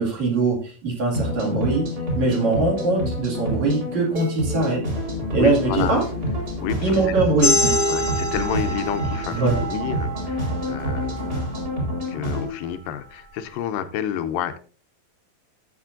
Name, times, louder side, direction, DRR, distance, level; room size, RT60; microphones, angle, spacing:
voice 1, 0.0-1.9 2.2-4.8 5.3-6.0 6.8-7.8 9.3-9.6, right 3 dB, 55° right, 3.3 m, -22 dB
sound 1, 1.1-12.5, left 1 dB, 25° right, 3.9 m, -28 dB
sound 2, 5.0-11.4, right 2 dB, 75° right, 3.2 m, -38 dB
voice 2, 5.4-6.0 6.6-7.2 7.9-11.6 12.1-14.6, left 9 dB, 80° left, 2.3 m, -30 dB
sound 3, 7.4-12.6, left 1 dB, 20° left, 1.1 m, -27 dB
13.0 x 8.1 x 2.6 m
omnidirectional pair, 4.2 m